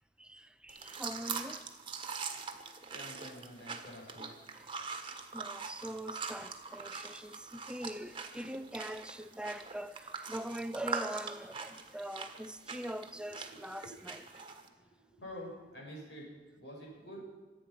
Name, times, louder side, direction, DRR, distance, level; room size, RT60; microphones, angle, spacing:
voice 1, 0.2-1.7 2.1-2.2 4.5-4.7 5.3-14.2, right 1 dB, 5° right, 0.5 m, -42 dB
sound 1, 0.7-14.7, right 5 dB, 30° right, 1.4 m, -43 dB
voice 2, 2.9-4.3 13.1-14.2 14.6-17.2, equal, 80° left, 6.8 m, -49 dB
25.0 x 9.1 x 5.8 m
head